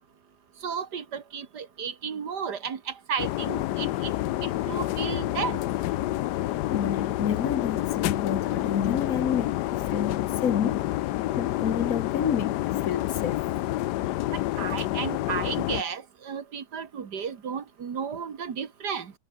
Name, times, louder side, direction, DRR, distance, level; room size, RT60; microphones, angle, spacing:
voice 1, 0.6-4.1 4.4-5.6 14.6-19.1, right 7 dB, 85° right, 2.4 m, -33 dB
sound 1, 3.2-15.8, left 15 dB, 85° left, 1.2 m, -28 dB
voice 2, 6.6-10.9 11.3-13.4, left 8 dB, 60° left, 1.6 m, -29 dB
omnidirectional pair, 1.7 m